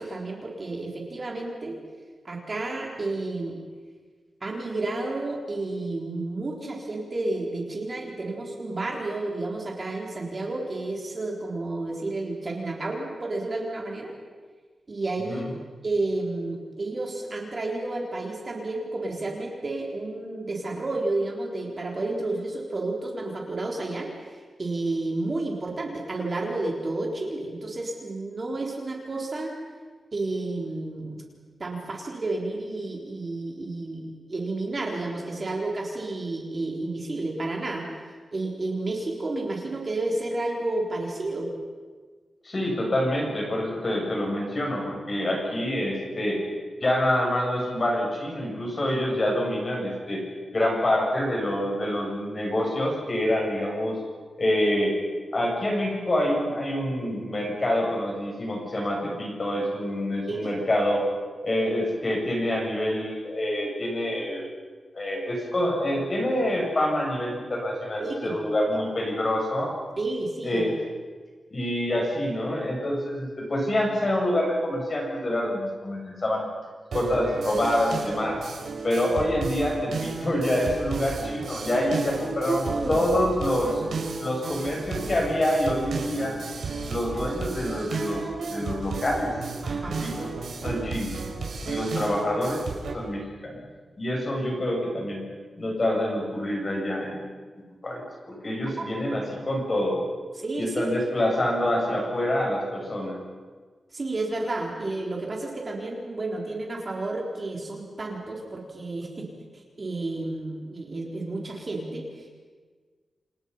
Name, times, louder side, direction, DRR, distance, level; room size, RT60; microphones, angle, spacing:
voice 1, 0.0-1.8 2.2-3.6 4.4-14.1 14.9-15.4 15.8-29.5 30.1-31.2 31.6-37.9 38.3-41.5 60.3-60.5 68.0-68.4 70.0-70.7 78.9-79.0 82.5-83.0 89.6-90.1 98.8-98.9 100.4-100.8 103.9-109.3 109.5-112.3, right 2 dB, 30° right, -1 dB, 4.0 m, -31 dB
voice 2, 42.4-46.4 46.8-50.2 50.5-54.0 54.4-54.9 55.3-61.0 61.4-64.4 64.9-69.7 70.4-70.7 71.5-76.4 76.9-78.4 78.8-82.6 82.9-83.8 84.2-86.3 86.9-88.2 88.5-89.3 89.7-90.3 90.6-91.2 91.6-92.6 92.9-93.6 94.0-95.2 95.6-97.2 97.8-100.0 100.6-103.2, left 1 dB, 30° left, -1 dB, 8.0 m, -26 dB
sound 1, 76.9-92.9, right 4 dB, 80° right, 5.5 m, -33 dB
29.0 x 28.5 x 5.7 m, 1.5 s
wide cardioid pair, 175°, 0 cm